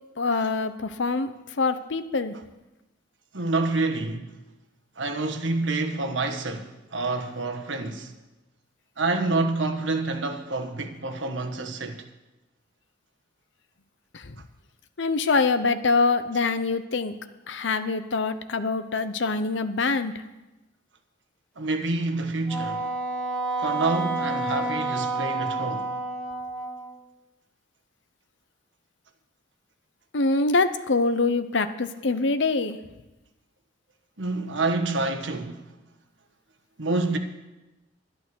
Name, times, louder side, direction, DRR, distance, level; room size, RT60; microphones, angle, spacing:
voice 1, 0.2-1.3 1.6-2.3 14.1-14.4 15.0-17.1 17.5-20.1 30.1-32.8, left 3 dB, 75° left, 0.8 m, -24 dB
voice 2, 3.3-4.4 5.0-8.1 9.0-12.1 21.6-22.9 23.6-25.9 34.2-35.7 36.8-37.2, right 3 dB, 80° right, 1.3 m, -28 dB
Wind instrument woodwind instrument, 22.5-27.0, right 2 dB, 5° left, 1.4 m, -29 dB
11.5 x 11.5 x 6.3 m
head